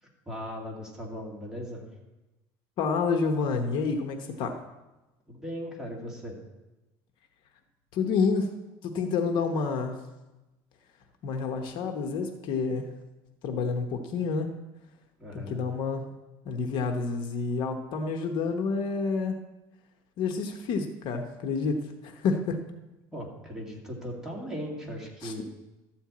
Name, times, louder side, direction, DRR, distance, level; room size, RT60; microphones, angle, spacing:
voice 1, 0.3-1.9 5.3-6.4 15.2-15.6 23.1-25.4, equal, 5° right, -2 dB, 2.3 m, -38 dB
voice 2, 2.8-4.6 7.9-8.5 8.8-10.0 11.2-12.9 13.4-14.5 15.3-16.1 16.4-19.4 20.2-22.6 25.2-25.4, left 4 dB, 55° left, 5 dB, 1.0 m, -29 dB
12.5 x 4.5 x 8.4 m, 1.0 s
cardioid pair, 145°, 9 cm